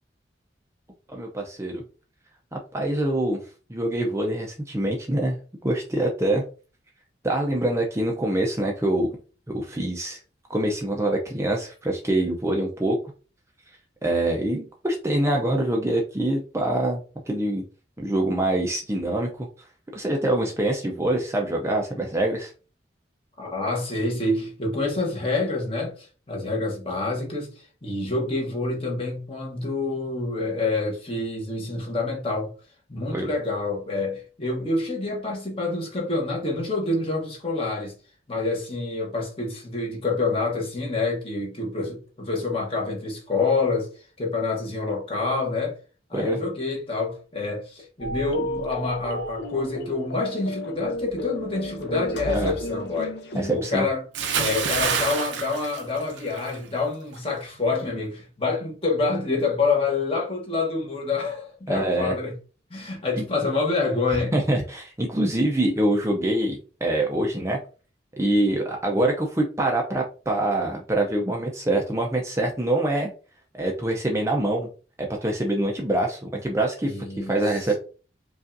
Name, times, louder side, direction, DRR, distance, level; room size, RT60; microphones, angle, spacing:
voice 1, 1.1-1.8 2.5-3.4 3.7-5.4 5.6-6.4 7.2-9.1 9.5-10.2 10.5-13.0 14.0-17.0 17.3-17.6 18.0-19.5 19.9-22.5 33.1-33.3 46.1-46.4 52.3-52.5 53.3-53.9 61.7-62.1 64.1-67.6 68.2-73.1 73.5-74.7 75.0-77.8, right 1 dB, 15° right, 0.5 m, -25 dB
voice 2, 23.4-32.5 32.9-37.9 38.3-43.9 44.2-45.8 46.1-53.2 53.5-54.0 54.4-62.3 62.7-64.3 76.8-77.4, left 3 dB, 30° left, 1.2 m, -27 dB
sound 1, 48.0-53.6, equal, 65° left, 0.7 m, -33 dB
Bathtub (filling or washing) / Splash splatter, 54.1-56.6 56.9-57.2, right 6 dB, 85° right, 0.7 m, -27 dB
5.0 x 2.4 x 2.6 m
head